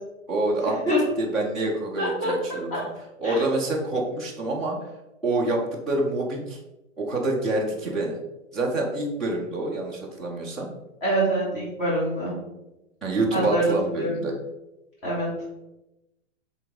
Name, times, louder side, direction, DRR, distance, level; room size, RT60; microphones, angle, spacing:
voice 1, 0.3-2.7 3.2-4.8 5.2-6.6 7.0-8.2 8.5-10.7 13.0-14.3, right 2 dB, ahead, -7 dB, 0.3 m, -27 dB
voice 2, 2.0-2.3 2.7-2.8 3.2-3.4 11.0-12.3 13.3-14.2 15.0-15.3, right 1 dB, 30° left, -8 dB, 2.6 m, -25 dB
6.3 x 3.9 x 5.3 m, 0.94 s
hypercardioid pair, 140°, 39 cm